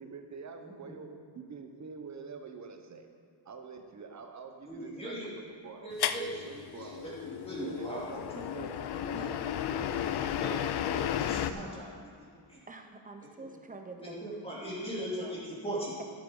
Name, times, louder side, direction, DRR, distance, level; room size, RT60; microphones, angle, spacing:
voice 1, 0.0-3.1 3.4-6.0 6.4-7.1 7.6-8.8 9.5-10.0, right 5 dB, 40° right, 5 dB, 1.0 m, -46 dB
voice 2, 4.7-5.3 5.8-6.5 6.8-8.4 8.9-9.3 9.7-10.6 10.9-11.9 12.2-12.6 13.4-13.5 14.0-15.9, right 1 dB, 15° left, -7 dB, 2.8 m, -40 dB
sound 1, 6.0-11.5, left 10 dB, 60° left, 0.6 m, -33 dB
voice 3, 12.7-14.2 14.5-15.3, right 3 dB, 20° right, 4 dB, 0.8 m, -47 dB
12.0 x 11.5 x 3.9 m, 2.3 s
cardioid pair, 155°, 44 cm